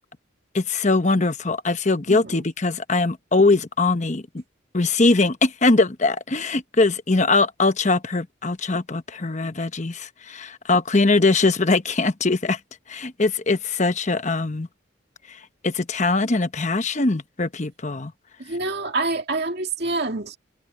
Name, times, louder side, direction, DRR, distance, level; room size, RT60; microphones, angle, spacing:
voice 1, 0.5-4.4 4.7-12.6 12.9-14.7 15.3-18.1, left 3 dB, 35° left, 1.0 m, -21 dB
voice 2, 18.4-20.4, right 3 dB, 55° right, 2.3 m, -26 dB
head